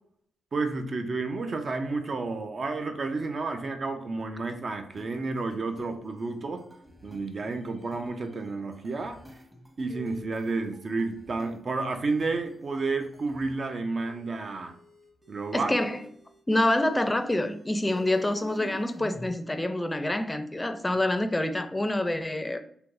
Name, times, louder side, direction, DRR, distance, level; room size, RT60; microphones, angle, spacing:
voice 1, 0.5-6.6 7.0-9.2 9.8-14.7 15.3-15.8, right 3 dB, 55° right, 0.5 m, -31 dB
sound 1, 4.9-13.6 14.0-19.3, equal, 15° right, 0.9 m, -49 dB
voice 2, 15.5-16.1 16.5-22.6, left 1 dB, 20° left, 0.4 m, -27 dB
3.4 x 2.8 x 2.5 m
supercardioid pair, 45°, 0 cm